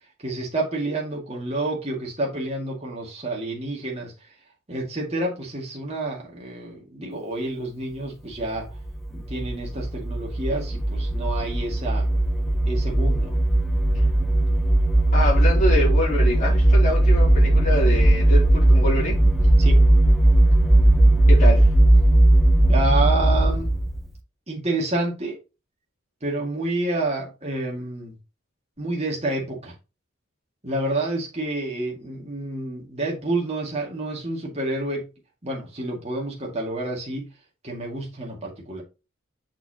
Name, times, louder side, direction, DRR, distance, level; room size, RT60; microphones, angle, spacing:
voice 1, 0.2-4.1 4.7-8.7 9.1-12.1 12.7-13.4 19.6-19.8 22.7-23.7 24.5-25.4 26.2-28.1 28.8-29.7 30.6-35.0 35.4-37.3 37.6-38.8, right 2 dB, 30° right, 2.1 m, -29 dB
sound 1, 8.8-24.1, right 1 dB, ahead, 0.7 m, -18 dB
voice 2, 15.1-19.2 21.3-21.7, equal, 40° left, 2.8 m, -25 dB
6.9 x 5.8 x 2.9 m
head